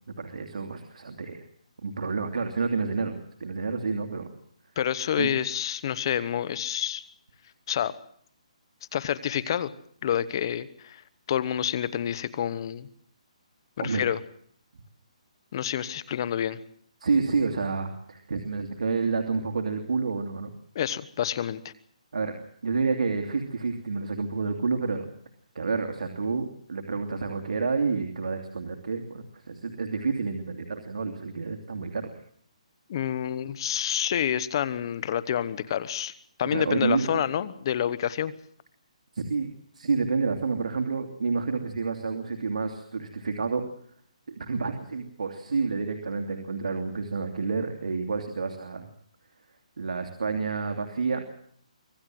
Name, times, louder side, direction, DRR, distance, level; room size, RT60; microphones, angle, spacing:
voice 1, 0.2-1.4 1.8-3.1 3.4-4.3 5.2-5.3 13.8-14.0 17.0-20.5 22.1-22.3 22.6-25.0 25.5-32.1 36.5-37.2 39.1-43.6 44.4-48.9 49.8-51.2, right 4 dB, 80° right, 4 dB, 2.8 m, -29 dB
voice 2, 4.8-7.0 7.7-7.9 8.9-9.7 10.0-11.0 11.3-12.9 13.8-14.2 15.5-16.6 20.7-21.7 32.9-36.1 36.4-38.3, left 10 dB, 40° left, 16 dB, 1.2 m, -28 dB
25.0 x 18.0 x 7.8 m, 0.62 s
hypercardioid pair, 165°, 4 cm